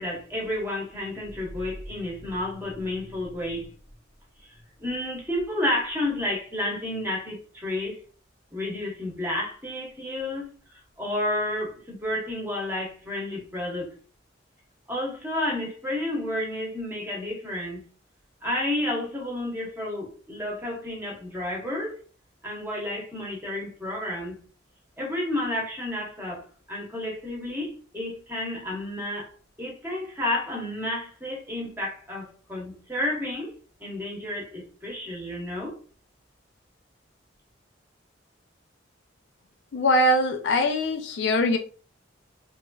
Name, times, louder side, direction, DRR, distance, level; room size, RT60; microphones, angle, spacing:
voice 1, 0.0-3.7 4.8-8.0 8.5-10.5 11.0-13.9 14.9-17.8 18.4-22.0 22.4-24.4 25.0-29.3 29.6-33.5 33.8-35.8, left 1 dB, 10° right, 0.9 m, -31 dB
voice 2, 39.7-41.6, left 1 dB, 65° left, 0.4 m, -22 dB
3.0 x 2.4 x 2.3 m
head